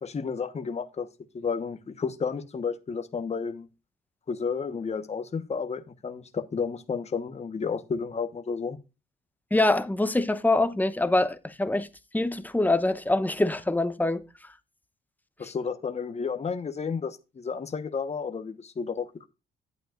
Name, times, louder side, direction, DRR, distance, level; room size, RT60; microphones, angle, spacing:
voice 1, 0.0-1.1 1.3-3.7 4.3-8.8 15.4-19.3, left 5 dB, 35° left, 1.2 m, -32 dB
voice 2, 9.5-11.9 12.1-14.2, left 2 dB, 10° left, 0.9 m, -24 dB
11.5 x 8.7 x 2.5 m
cardioid pair, 90°, 20 cm